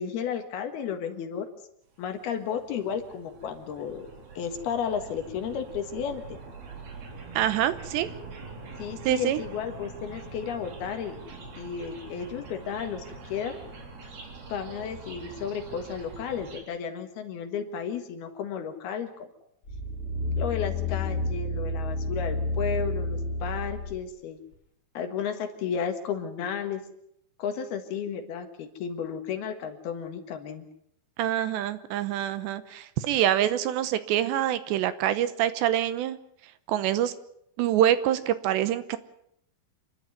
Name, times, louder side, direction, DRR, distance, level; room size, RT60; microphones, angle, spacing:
voice 1, 0.0-1.5 2.0-4.1 4.4-6.4 8.8-13.6 14.5-19.1 20.4-24.4 24.9-26.8 27.4-30.6, left 7 dB, 65° left, 6 dB, 3.4 m, -33 dB
sound 1, 2.0-16.6, right 4 dB, 60° right, 5.2 m, -44 dB
voice 2, 7.3-8.1 9.0-9.4 31.2-36.2 36.7-37.1 37.6-39.0, right 11 dB, 80° right, 14 dB, 3.1 m, -25 dB
sound 2, 19.7-24.0 24.5-24.6, left 2 dB, 20° left, 6.5 m, -30 dB
28.0 x 12.0 x 9.4 m, 0.74 s
omnidirectional pair, 5.2 m